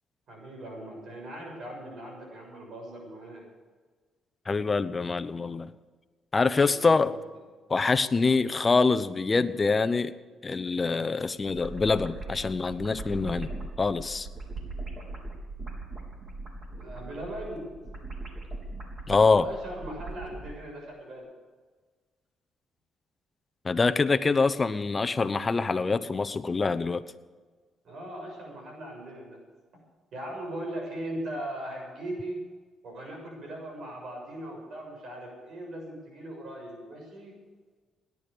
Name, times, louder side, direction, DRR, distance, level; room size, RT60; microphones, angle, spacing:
voice 1, 0.3-3.4 6.5-7.1 16.7-17.7 19.3-21.2 27.8-29.4 30.1-32.4 32.8-37.3, right 1 dB, 65° right, 1 dB, 7.1 m, -39 dB
voice 2, 4.5-5.7 6.3-7.1 7.7-10.1 10.4-13.5 13.8-14.3 19.1-19.5 23.6-27.0, left 4 dB, 30° left, 13 dB, 0.9 m, -25 dB
sound 1, 11.5-20.5, right 2 dB, 40° right, 3.9 m, -40 dB
18.0 x 11.0 x 7.0 m, 1.4 s
cardioid pair, 90°, 0 cm